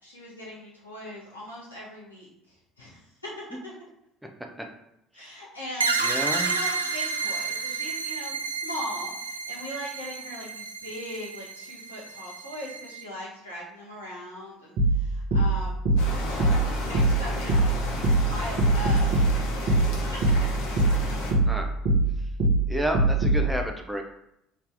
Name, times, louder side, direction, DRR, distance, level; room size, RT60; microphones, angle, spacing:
voice 1, 0.0-3.7 5.1-15.8 16.2-19.7 20.1-20.2, left 1 dB, 85° left, -6 dB, 1.2 m, -40 dB
sound 1, 5.8-13.0, right 4 dB, 85° right, 0.3 m, -31 dB
voice 2, 6.0-6.5 21.4-21.7 22.2-22.3 22.7-24.0, right 1 dB, 5° right, 2 dB, 0.6 m, -30 dB
sound 2, 14.8-23.5, right 2 dB, 50° right, 1.2 m, -23 dB
sound 3, 16.0-21.3, left 2 dB, 65° left, 0.9 m, -34 dB
4.0 x 2.8 x 3.4 m, 0.79 s
figure-of-eight pair, 60°, 0 cm